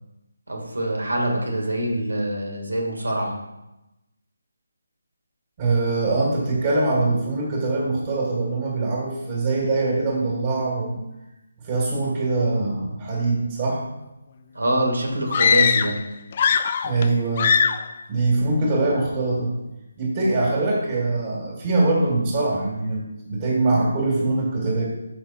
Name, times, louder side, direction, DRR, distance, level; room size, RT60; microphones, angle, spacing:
voice 1, 0.5-3.4 14.5-16.0, right 1 dB, 80° right, 1 dB, 2.0 m, -24 dB
voice 2, 5.6-11.0 11.6-13.8 16.8-17.5 18.1-19.5 20.0-24.8, right 2 dB, 30° right, -4 dB, 2.5 m, -23 dB
sound 1, 15.3-16.0 16.3-17.1 17.4-17.9, left 6 dB, 35° left, 0.4 m, -20 dB
6.2 x 5.9 x 4.4 m, 0.96 s
figure-of-eight pair, 155°, 0 cm